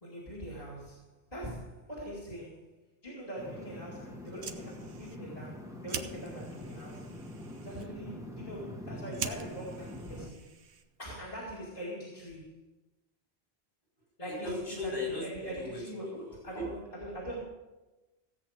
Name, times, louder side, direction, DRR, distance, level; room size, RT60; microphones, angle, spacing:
voice 1, 0.0-2.8 3.0-7.1 7.6-10.5 11.0-12.6 14.2-14.5 14.8-17.4, equal, 35° left, -6 dB, 2.5 m, -42 dB
sound 1, 3.4-10.3, left 1 dB, 5° right, 1.4 m, -44 dB
Fire, 4.2-11.1, right 6 dB, 90° right, 1.2 m, -45 dB
voice 2, 14.3-15.8 16.2-16.8, left 2 dB, 55° left, -3 dB, 5.5 m, -37 dB
16.0 x 8.3 x 5.0 m, 1.1 s
omnidirectional pair, 1.1 m